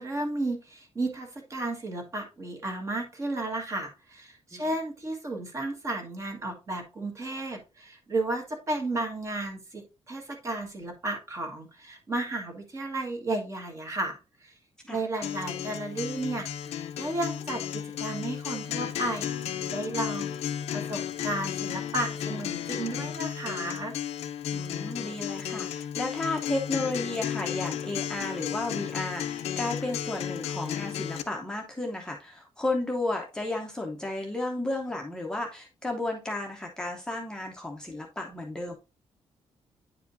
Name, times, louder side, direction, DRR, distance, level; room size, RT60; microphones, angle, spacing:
voice 1, 0.0-14.5 14.9-20.3 20.7-24.0, right 2 dB, 30° right, 3 dB, 1.5 m, -33 dB
Acoustic guitar, 15.2-31.2, left 9 dB, 90° left, 0.6 m, -34 dB
voice 2, 24.5-38.7, left 2 dB, 5° left, 0 dB, 0.8 m, -33 dB
9.3 x 4.9 x 2.6 m, 0.29 s
cardioid pair, 175°, 11 cm